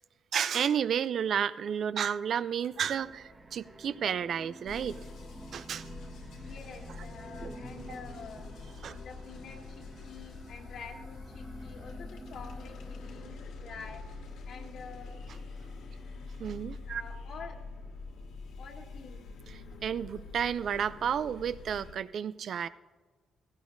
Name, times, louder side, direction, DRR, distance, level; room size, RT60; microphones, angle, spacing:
voice 1, 0.3-5.0 5.5-5.9 7.4-7.5 8.8-9.0 16.4-17.0 19.5-22.7, right 8 dB, 60° right, 0.4 m, -32 dB
sound 1, 2.6-13.4, right 2 dB, 25° right, 1.4 m, -50 dB
sound 2, 4.7-21.9, left 4 dB, 85° left, 2.3 m, -45 dB
voice 2, 6.4-8.5 8.9-14.0 14.4-15.2 16.8-17.6 18.6-19.2, left 5 dB, 65° left, 1.6 m, -48 dB
18.0 x 16.0 x 2.6 m
cardioid pair, 100°, 0 cm